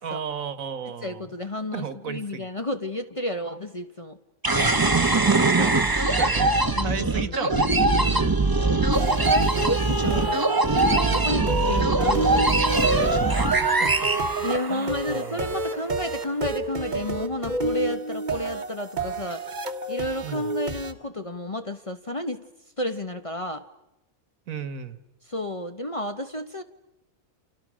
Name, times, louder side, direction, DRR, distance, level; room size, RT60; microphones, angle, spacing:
voice 1, 0.0-1.3 1.7-2.5 5.1-7.6 7.9-8.3 11.6-11.9 13.4-13.5 13.8-14.1 14.7-15.6 20.2-20.5 24.5-25.0, right 7 dB, 75° right, 13 dB, 1.8 m, -35 dB
voice 2, 1.0-4.2 6.8-7.3 9.0-12.7 14.4-19.4 19.9-22.4 22.8-23.6 25.3-26.6, left 1 dB, 25° left, 8 dB, 0.9 m, -31 dB
sound 1, 4.4-15.1, right 2 dB, 15° right, 1.0 m, -22 dB
sound 2, 8.9-20.9, right 3 dB, 35° right, 1.4 m, -31 dB
29.0 x 28.0 x 6.3 m, 0.92 s
omnidirectional pair, 1.4 m